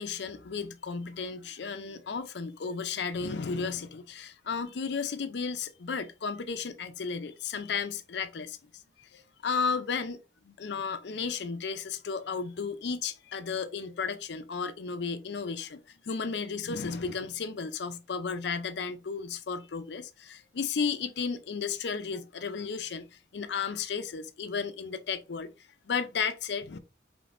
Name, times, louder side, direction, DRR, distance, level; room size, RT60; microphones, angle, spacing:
voice 1, 0.0-8.6 9.0-25.5 25.9-26.8, left 5 dB, 70° left, 0.5 m, -34 dB
5.1 x 3.2 x 2.5 m
head